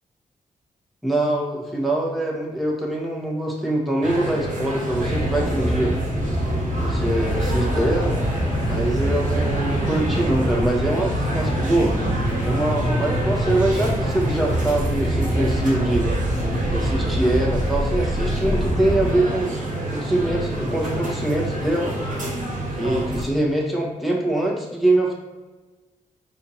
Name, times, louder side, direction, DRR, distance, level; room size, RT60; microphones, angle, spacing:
voice 1, 1.0-6.0 6.8-8.1 8.6-12.0 12.4-16.2 16.7-21.9 22.8-25.2, right 1 dB, ahead, -3 dB, 1.4 m, -23 dB
sound 1, 4.0-23.2, right 1 dB, 60° right, 1.4 m, -28 dB
sound 2, 4.9-19.3 19.7-19.8, equal, 35° left, 1.0 m, -25 dB
4.3 x 2.8 x 4.3 m, 1.2 s
supercardioid pair, 50°, 15 cm